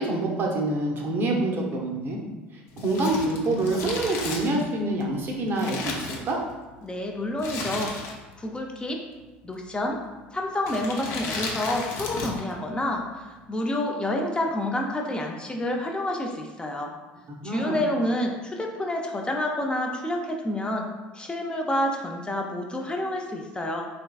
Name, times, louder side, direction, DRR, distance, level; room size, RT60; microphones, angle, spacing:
voice 1, 0.0-2.2 2.7-6.4 17.3-17.8, right 2 dB, 45° right, 0 dB, 0.7 m, -26 dB
Crumpling crinkling, 2.7-6.7 7.4-8.4 8.7-8.8 9.6-9.9 10.6-12.5 12.8-12.9, left 3 dB, 60° left, 0.7 m, -34 dB
voice 2, 6.8-9.0 9.4-10.0 10.3-13.0 13.3-16.9 17.4-20.9 21.1-23.9, left 1 dB, 20° left, 1 dB, 0.5 m, -28 dB
3.4 x 3.1 x 2.3 m, 1.2 s
hypercardioid pair, 75°, 5 cm